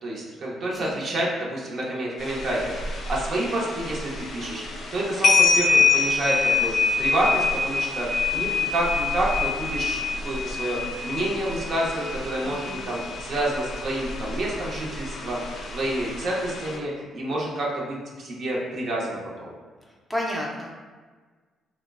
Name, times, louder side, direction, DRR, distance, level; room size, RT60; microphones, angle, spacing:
voice 1, 0.0-4.7 4.9-6.7 7.0-15.4 15.7-19.5, right 1 dB, 60° right, -3 dB, 0.6 m, -28 dB
sound 1, 2.2-16.8, left 4 dB, 65° left, 0.4 m, -26 dB
voice 2, 12.4-12.7 20.1-20.7, left 1 dB, 5° left, -3 dB, 0.5 m, -31 dB
3.1 x 2.0 x 2.3 m, 1.4 s
cardioid pair, 80°, 0 cm